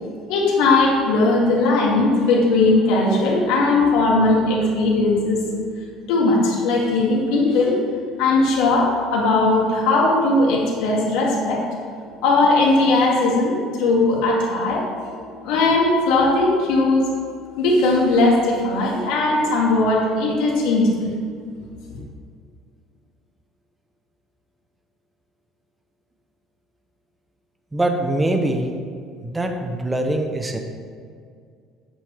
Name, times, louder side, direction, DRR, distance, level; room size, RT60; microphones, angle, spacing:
voice 1, 0.3-5.4 6.1-7.8 8.2-11.7 12.2-14.9 15.4-17.1 17.6-21.1 21.9-22.0, left 2 dB, 80° left, -2 dB, 2.0 m, -18 dB
voice 2, 27.7-28.8 29.2-30.6, right 1 dB, 10° right, 3 dB, 0.7 m, -23 dB
9.0 x 7.4 x 3.3 m, 2.2 s
cardioid pair, 145°, 0 cm